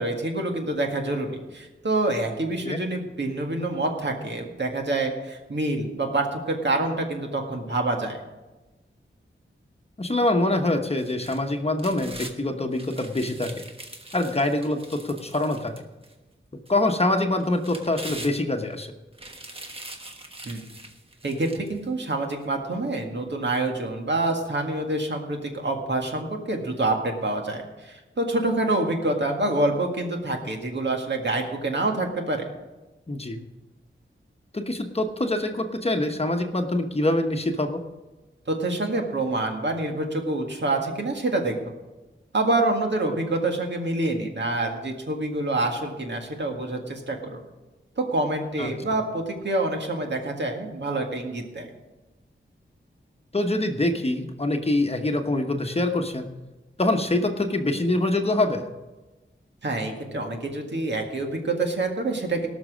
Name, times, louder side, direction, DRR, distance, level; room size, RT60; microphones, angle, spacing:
voice 1, 0.0-8.2 20.4-20.7 21.2-32.4 38.5-41.6 42.3-47.4 48.0-51.7 59.6-62.5, right 2 dB, 60° right, 2 dB, 1.9 m, -27 dB
voice 2, 10.0-13.5 14.1-15.7 16.7-18.9 33.1-33.4 34.5-37.8 48.6-48.7 53.3-56.3 56.8-58.7, left 2 dB, 30° left, 5 dB, 1.1 m, -25 dB
sound 1, 11.0-12.4 12.7-16.1 16.7-16.8 17.4-18.7 19.1-21.8 22.3-22.4, right 1 dB, 25° right, 1.3 m, -42 dB
18.0 x 6.1 x 6.3 m, 1.1 s
wide cardioid pair, 95°, 21 cm